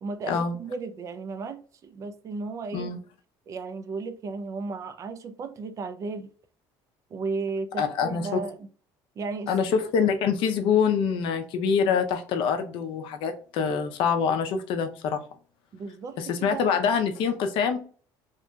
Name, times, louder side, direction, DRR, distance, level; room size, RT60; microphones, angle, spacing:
voice 1, 0.0-2.9 3.5-6.3 7.1-8.7 9.2-9.7 15.7-16.7, right 4 dB, 35° right, 0.4 m, -35 dB
voice 2, 7.8-8.4 9.5-15.2 16.2-17.8, left 6 dB, 65° left, 0.5 m, -25 dB
2.8 x 2.6 x 2.2 m
cardioid pair, 135°, 9 cm